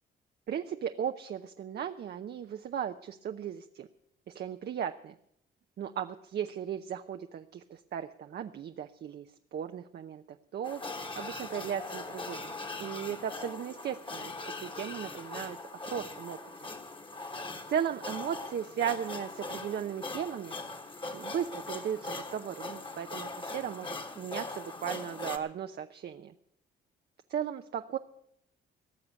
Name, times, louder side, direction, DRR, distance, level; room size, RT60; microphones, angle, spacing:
voice 1, 0.5-3.9 4.3-5.1 5.8-9.3 9.5-10.2 10.5-10.8 11.1-12.5 12.8-14.3 14.6-15.6 15.9-16.4 17.7-20.5 21.1-26.3 27.3-28.0, right 9 dB, 55° right, 7 dB, 0.7 m, -36 dB
sound 1, 10.6-25.4, left 3 dB, 25° left, 1.7 m, -41 dB
18.0 x 6.7 x 8.5 m, 0.71 s
cardioid pair, 90°, 20 cm